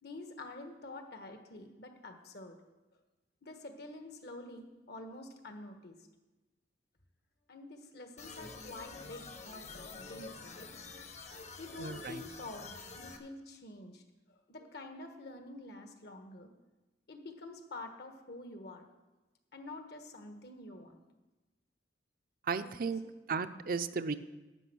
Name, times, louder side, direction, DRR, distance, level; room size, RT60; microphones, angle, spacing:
voice 1, 0.0-2.6 3.4-6.0 7.5-10.7 11.6-14.0 14.3-16.5 17.1-18.9 19.5-21.0 22.6-23.1, left 2 dB, 65° left, 6 dB, 1.3 m, -48 dB
sound 1, 8.2-13.2, left 4 dB, 40° left, 1.0 m, -48 dB
voice 2, 11.8-12.2 22.5-23.0 23.3-24.2, right 5 dB, 55° right, 11 dB, 0.5 m, -34 dB
10.5 x 8.6 x 6.2 m, 1.1 s
head